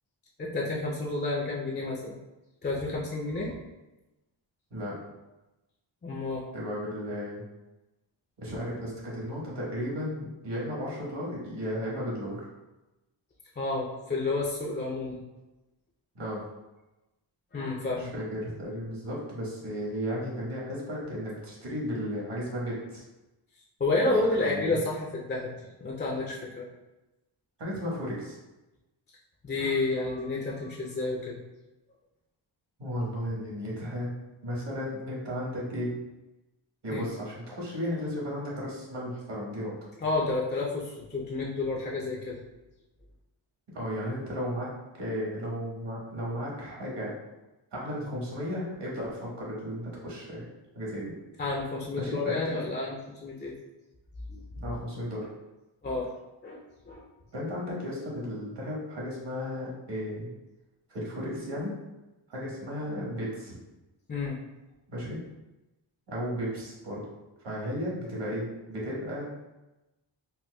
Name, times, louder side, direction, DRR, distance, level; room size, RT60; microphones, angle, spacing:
voice 1, 0.4-2.2 2.6-3.6 6.0-6.4 13.6-15.2 17.5-18.1 23.8-25.5 25.8-26.7 29.4-31.4 36.9-37.0 40.0-42.4 51.4-53.5 54.3-54.4 55.8-56.1 56.4-56.6 56.9-57.0 64.1-64.4, left 2 dB, 25° left, -3 dB, 0.4 m, -30 dB
voice 2, 6.5-7.4 8.4-12.4 16.1-16.4 18.0-23.0 24.0-24.8 27.6-28.4 32.8-34.1 34.4-35.9 36.8-39.9 43.7-44.7 45.0-47.1 47.7-50.5 50.7-51.1 51.9-52.6 54.5-55.3 57.3-60.3 60.9-61.8 62.3-63.6 64.9-65.2 66.1-67.0 67.4-69.3, equal, 60° right, -5 dB, 1.3 m, -34 dB
4.2 x 2.2 x 2.2 m, 1.0 s
cardioid pair, 85°, 47 cm